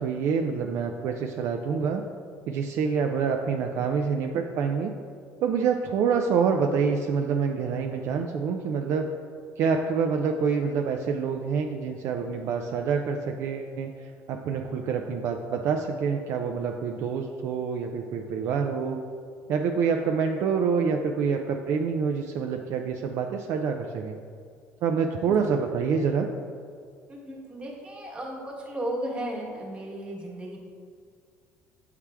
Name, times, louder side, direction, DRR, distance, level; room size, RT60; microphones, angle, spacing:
voice 1, 0.0-2.0 2.5-4.9 5.4-9.1 9.6-19.0 19.5-24.2 24.8-26.3, right 6 dB, 55° right, 3 dB, 0.4 m, -27 dB
voice 2, 27.1-30.6, right 1 dB, 20° right, -2 dB, 1.3 m, -35 dB
7.3 x 4.7 x 3.4 m, 2.2 s
cardioid pair, 145°, 5 cm